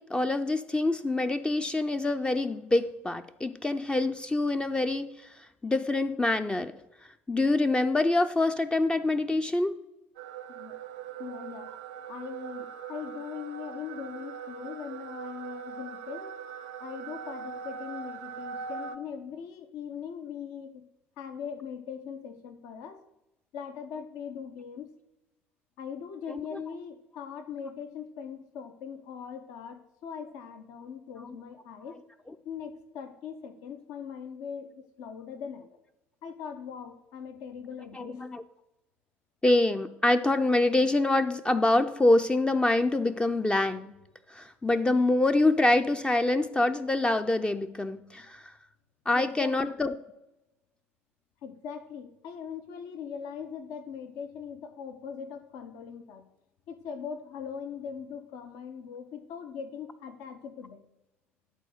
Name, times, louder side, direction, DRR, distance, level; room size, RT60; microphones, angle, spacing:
voice 1, 0.0-6.7 7.3-9.7 26.3-26.4 38.0-38.4 39.4-43.9 44.3-48.5 49.1-49.9, left 2 dB, 15° left, 8 dB, 0.5 m, -25 dB
sound 1, 10.2-19.0, right 7 dB, 70° right, 0.5 m, -41 dB
voice 2, 11.2-11.7 12.1-16.3 16.8-20.9 21.2-23.0 23.5-24.9 25.8-32.0 32.4-35.8 36.2-38.3 49.1-49.6 51.4-56.3 56.7-60.8, left 7 dB, 60° left, 9 dB, 0.8 m, -40 dB
11.0 x 4.1 x 6.4 m, 0.91 s
figure-of-eight pair, 60°, 7 cm